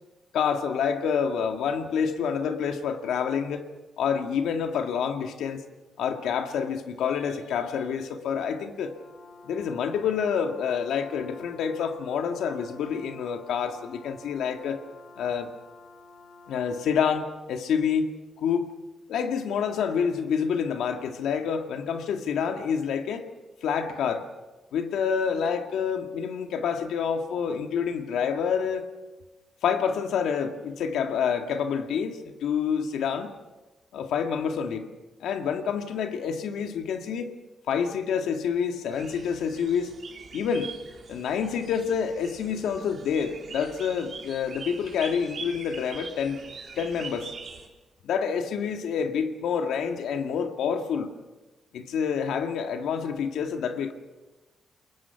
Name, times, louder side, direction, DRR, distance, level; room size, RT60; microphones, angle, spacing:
voice 1, 0.3-3.6 4.0-5.6 6.0-8.9 9.4-14.8 15.2-15.5 16.5-18.1 18.4-18.7 19.1-23.3 23.6-24.3 24.7-28.9 29.6-33.3 33.9-34.9 35.2-37.3 37.7-40.0 40.3-40.7 41.1-46.4 46.8-47.3 48.0-51.1 51.7-53.9, left 7 dB, 90° left, 5 dB, 1.9 m, -28 dB
Brass instrument, 8.6-17.3, left 3 dB, 55° left, 4.6 m, -50 dB
sound 1, 38.9-47.7, right 5 dB, 45° right, 3.5 m, -43 dB
29.0 x 21.5 x 5.9 m, 1.2 s
cardioid pair, 125°, 0 cm